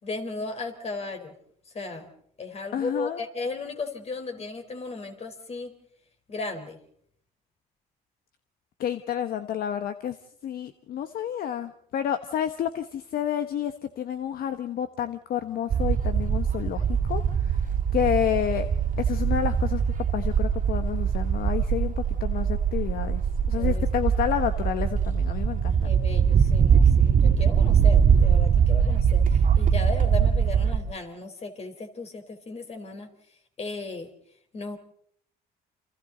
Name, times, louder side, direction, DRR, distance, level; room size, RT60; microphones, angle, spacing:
voice 1, 0.0-1.3 1.6-2.1 2.4-5.7 6.3-6.8 22.1-22.2 23.6-23.9 25.8-33.1 33.6-34.1 34.5-34.8, left 3 dB, 40° left, 5 dB, 4.3 m, -35 dB
voice 2, 2.7-3.2 8.8-10.2 10.4-18.7 19.0-19.8 20.1-23.2 23.5-25.8, left 10 dB, 60° left, 9 dB, 1.2 m, -29 dB
sound 1, 15.7-30.8, right 7 dB, 50° right, 2.4 m, -22 dB
29.0 x 27.0 x 4.0 m, 0.64 s
cardioid pair, 110°, 17 cm